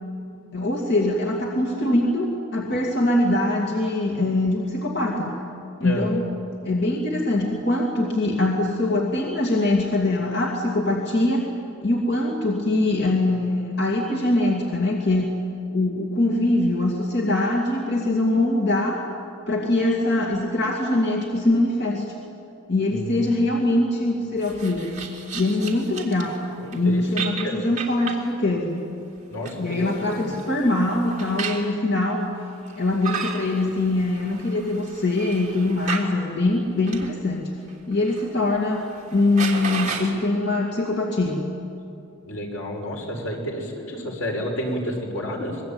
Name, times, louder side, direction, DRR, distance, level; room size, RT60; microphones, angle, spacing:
voice 1, 0.5-5.4 5.8-6.3 6.6-11.5 11.8-15.3 15.7-19.0 19.5-22.1 22.7-25.0 25.3-26.4 26.7-28.8 29.6-32.3 32.7-37.5 37.9-38.8 39.1-41.5, left 2 dB, 55° left, -1 dB, 2.6 m, -23 dB
voice 2, 22.9-23.3 26.6-27.6 29.3-30.1 42.2-45.6, equal, 80° left, 1 dB, 5.6 m, -30 dB
sound 1, 24.4-26.4 26.7-26.8 27.2-28.3 29.2-31.7 32.7-36.1 36.9-37.1 37.7-38.3 38.6-38.7 39.0-40.1, right 5 dB, 35° right, 3.1 m, -34 dB
25.5 x 22.0 x 8.9 m, 2.7 s
head